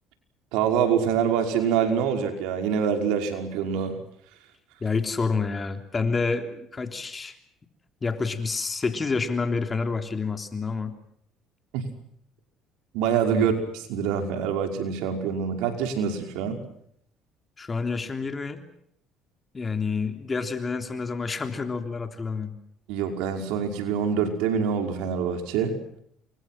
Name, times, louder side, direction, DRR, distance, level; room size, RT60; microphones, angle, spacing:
voice 1, 0.5-4.0 11.7-11.8 12.9-16.6 22.9-25.8, right 7 dB, 85° right, 5 dB, 5.5 m, -25 dB
voice 2, 4.8-7.4 8.0-11.0 13.3-13.5 17.6-18.6 19.5-22.6, left 4 dB, 25° left, 6 dB, 3.4 m, -28 dB
29.5 x 25.0 x 6.0 m, 0.69 s
cardioid pair, 95°, 0 cm